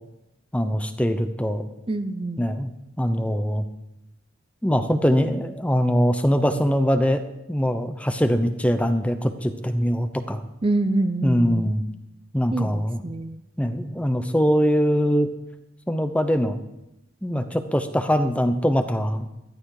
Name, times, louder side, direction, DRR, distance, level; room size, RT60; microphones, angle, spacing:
voice 1, 0.5-1.6 2.4-2.7 3.0-3.6 4.6-7.2 7.5-10.4 11.2-11.8 12.3-13.0 13.6-15.3 15.9-16.6 17.2-19.3, equal, 5° left, 9 dB, 0.8 m, -22 dB
voice 2, 1.9-2.4 10.6-11.7 12.5-13.4, right 2 dB, 30° right, 9 dB, 0.6 m, -26 dB
13.0 x 11.5 x 4.9 m, 0.90 s
head